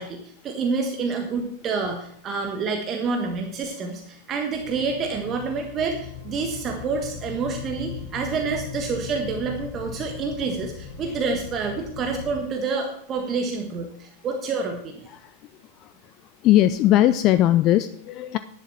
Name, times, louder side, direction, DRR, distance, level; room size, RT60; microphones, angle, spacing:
voice 1, 0.0-15.0, right 4 dB, 30° right, 3 dB, 1.4 m, -28 dB
sound 1, 4.5-12.4, left 7 dB, 55° left, 5.3 m, -38 dB
voice 2, 15.1-15.4 15.8-15.9 16.4-18.4, left 13 dB, 35° left, 13 dB, 0.4 m, -19 dB
11.0 x 11.0 x 4.4 m, 0.68 s
figure-of-eight pair, 90°, 0 cm